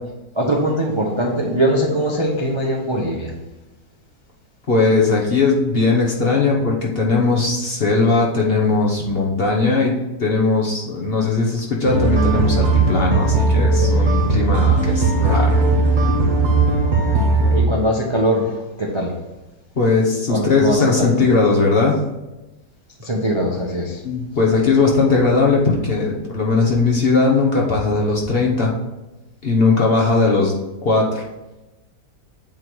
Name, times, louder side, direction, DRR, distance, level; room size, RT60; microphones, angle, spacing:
voice 1, 0.3-3.3 17.0-19.1 20.3-21.1 23.0-24.0, right 1 dB, 25° right, -1 dB, 0.6 m, -22 dB
voice 2, 4.7-15.6 19.8-22.0 24.0-28.7 29.4-30.5 30.8-31.2, left 3 dB, 40° left, -2 dB, 1.0 m, -18 dB
sound 1, 11.8-17.6, right 3 dB, 50° right, 1.5 m, -17 dB
8.5 x 3.2 x 6.1 m, 1.0 s
omnidirectional pair, 1.9 m